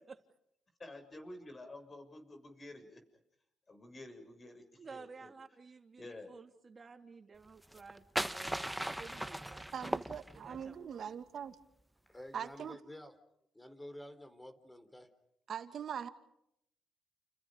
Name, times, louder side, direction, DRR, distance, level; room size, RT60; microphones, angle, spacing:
voice 1, 0.8-3.0 3.7-4.6 4.9-5.3 6.0-6.3, left 1 dB, 30° left, 6 dB, 7.1 m, -50 dB
voice 2, 4.7-10.0 10.3-11.0, right 4 dB, 35° right, 6 dB, 3.1 m, -53 dB
sound 1, 7.6-10.7, right 1 dB, 5° right, 1.1 m, -38 dB
voice 3, 9.7-11.6 12.3-12.8 15.5-16.1, right 8 dB, 60° right, 9 dB, 2.2 m, -42 dB
voice 4, 12.1-13.1 13.5-15.1, left 1 dB, 10° left, 10 dB, 4.2 m, -50 dB
30.0 x 30.0 x 5.3 m, 0.76 s
cardioid pair, 90°, 0 cm